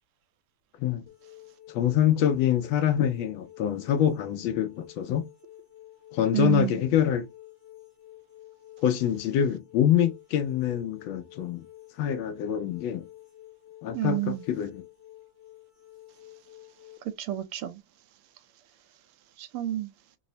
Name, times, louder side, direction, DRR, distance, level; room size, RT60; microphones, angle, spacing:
sound 1, 1.1-17.0, left 14 dB, 45° left, 0.8 m, -51 dB
voice 1, 1.7-5.3 6.1-7.3 8.8-11.7 12.0-13.0 13.8-14.8, left 10 dB, 75° left, 1.2 m, -25 dB
voice 2, 6.3-6.8 13.9-14.4 17.0-17.8 19.4-19.9, right 15 dB, 80° right, 1.5 m, -29 dB
4.7 x 2.0 x 2.7 m
omnidirectional pair, 2.4 m